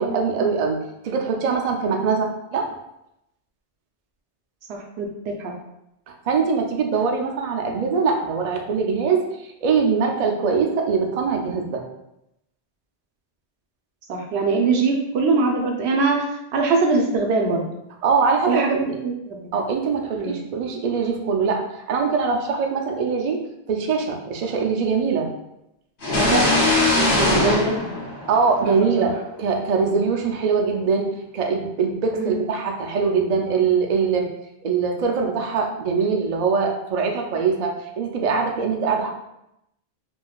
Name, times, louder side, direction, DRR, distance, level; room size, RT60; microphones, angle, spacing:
voice 1, 0.0-2.7 6.1-11.8 18.0-18.6 18.9-19.0 19.5-25.3 28.3-34.2 34.6-39.1, right 5 dB, 55° right, 1 dB, 0.5 m, -22 dB
voice 2, 4.7-5.5 14.1-16.3 16.5-17.7 18.5-18.8 19.0-19.4 20.2-20.3 26.1-26.7 27.1-27.9 29.0-29.1 32.2-32.4, right 3 dB, 80° right, 1 dB, 0.9 m, -22 dB
sound 1, 26.0-28.8, left 2 dB, 80° left, 1.2 m, -20 dB
3.6 x 2.5 x 2.3 m, 0.83 s
omnidirectional pair, 1.1 m